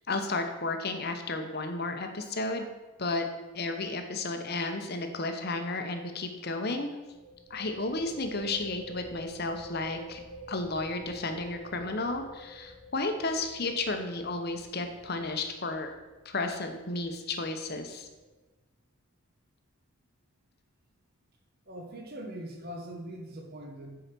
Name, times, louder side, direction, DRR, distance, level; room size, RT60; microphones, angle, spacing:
voice 1, 0.1-2.7 3.0-3.3 3.5-6.9 7.5-10.2 10.5-15.9 16.2-18.1, left 2 dB, 45° left, 5 dB, 0.9 m, -33 dB
sound 1, 7.0-18.3, equal, 65° right, 2.5 m, -49 dB
voice 2, 21.7-24.0, right 1 dB, 45° right, 2 dB, 1.1 m, -41 dB
8.1 x 4.9 x 6.0 m, 1.2 s
head